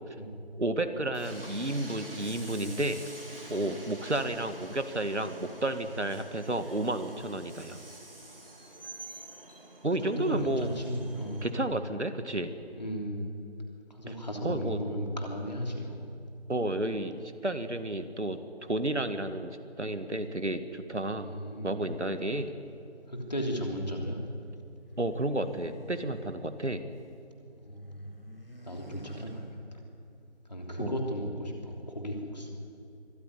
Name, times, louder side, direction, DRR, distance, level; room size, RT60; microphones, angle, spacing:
voice 1, 0.6-3.0 3.5-7.8 9.8-10.7 11.4-12.5 14.1-14.2 14.4-14.8 16.5-21.3 21.6-22.5 25.0-26.9 30.8-31.0, right 1 dB, 80° right, 9 dB, 2.0 m, -31 dB
Train, 1.1-11.5, right 2 dB, 55° right, 3.1 m, -47 dB
voice 2, 10.0-11.4 12.7-13.3 13.9-16.0 21.2-21.7 23.1-24.2 27.6-28.0 28.6-29.8 30.5-32.5, equal, 40° left, 1 dB, 3.2 m, -35 dB
sound 1, 24.8-27.2 27.5-30.0, equal, 55° left, 4.9 m, -50 dB
24.0 x 14.5 x 9.9 m, 2.5 s
figure-of-eight pair, 175°, 34 cm